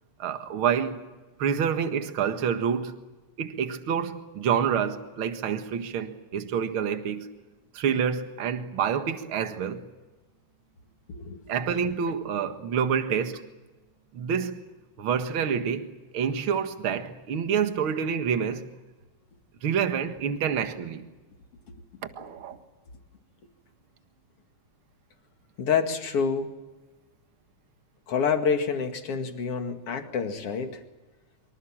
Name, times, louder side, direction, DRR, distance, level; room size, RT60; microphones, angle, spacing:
voice 1, 0.2-1.0 1.4-3.0 3.4-7.3 7.7-9.9 11.5-13.5 14.1-14.6 15.0-18.7 19.6-21.1 22.2-22.6, right 7 dB, 50° right, 2.2 m, -27 dB
voice 2, 11.1-11.6 21.7-21.8 25.6-26.5 28.1-30.8, left 6 dB, 50° left, 3.0 m, -28 dB
25.5 x 25.0 x 7.5 m
omnidirectional pair, 3.5 m